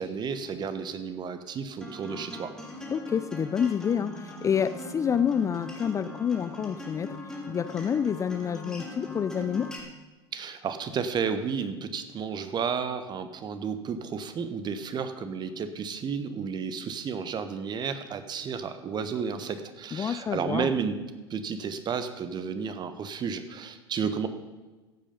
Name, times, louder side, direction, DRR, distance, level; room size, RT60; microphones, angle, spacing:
voice 1, 0.0-2.5 10.3-21.0 21.3-24.3, right 6 dB, 35° right, 10 dB, 1.3 m, -32 dB
Acoustic guitar, 1.8-9.8, left 1 dB, 5° left, 3.1 m, -40 dB
voice 2, 2.9-7.2 7.5-9.7 19.9-20.8, left 7 dB, 25° left, 13 dB, 0.5 m, -28 dB
15.0 x 8.5 x 5.3 m, 1.2 s
figure-of-eight pair, 80°, 13 cm